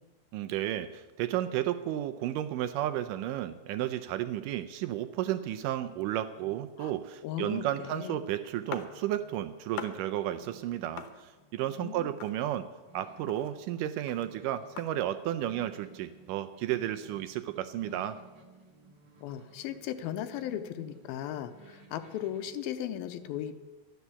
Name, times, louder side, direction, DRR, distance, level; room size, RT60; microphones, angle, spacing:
voice 1, 0.3-12.7 12.9-18.2, right 12 dB, 85° right, 11 dB, 1.9 m, -33 dB
sound 1, 6.1-22.5, right 2 dB, 45° right, 1.5 m, -58 dB
voice 2, 7.2-8.2 11.8-12.2 19.2-23.6, left 10 dB, 85° left, 9 dB, 2.5 m, -37 dB
sound 2, 8.7-9.4 9.8-10.3 11.0-11.7 12.2-12.9 13.2-15.2, left 8 dB, 70° left, 2.4 m, -44 dB
12.5 x 11.0 x 7.0 m, 1.2 s
omnidirectional pair, 4.3 m